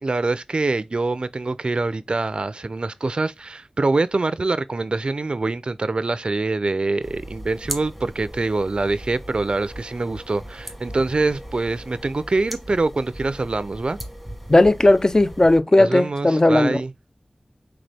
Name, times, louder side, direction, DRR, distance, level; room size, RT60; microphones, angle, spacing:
voice 1, 0.0-14.0 15.8-16.9, right 3 dB, 55° right, 0.4 m, -24 dB
sound 1, 7.0-15.6, equal, 5° left, 1.4 m, -38 dB
voice 2, 14.5-16.8, left 2 dB, 30° left, 0.4 m, -16 dB
4.0 x 3.4 x 3.3 m
wide cardioid pair, 45°, 2 cm